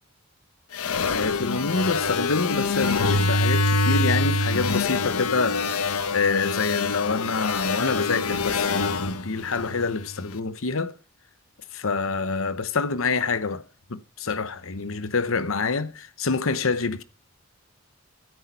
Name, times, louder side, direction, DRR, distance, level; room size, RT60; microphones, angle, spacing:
sound 1, 0.7-10.2, left 3 dB, 85° left, 1.1 m, -25 dB
voice 1, 1.1-11.0 11.7-13.6 13.9-14.0 14.3-17.0, left 4 dB, 65° left, 0.9 m, -27 dB
12.5 x 10.5 x 5.4 m
head